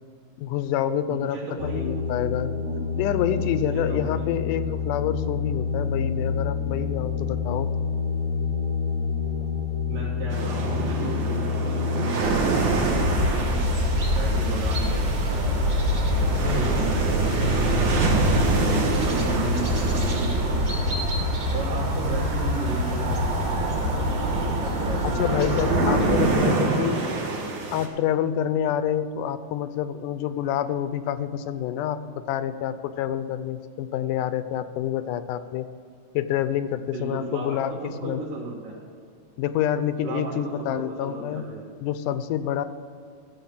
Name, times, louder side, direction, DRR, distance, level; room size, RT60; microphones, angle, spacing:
voice 1, 0.4-2.5 3.0-7.7 16.3-16.9 25.0-27.0 27.7-35.7 36.1-38.2 39.4-41.5 41.8-42.6, left 10 dB, 80° left, 12 dB, 2.2 m, -27 dB
voice 2, 1.1-1.9 2.6-2.8 3.7-4.3 9.9-12.4 12.7-15.7 16.2-18.6 19.0-21.0 21.5-25.5 26.0-27.6 36.9-38.8 40.0-41.6, right 3 dB, 85° right, -8 dB, 3.7 m, -35 dB
sound 1, 1.6-12.1, left 6 dB, 45° right, 2.1 m, -28 dB
sound 2, 10.3-27.9, right 3 dB, 70° right, 3.0 m, -28 dB
sound 3, 12.2-26.3, equal, 30° right, 2.3 m, -25 dB
14.5 x 7.4 x 7.3 m, 2.3 s
omnidirectional pair, 3.7 m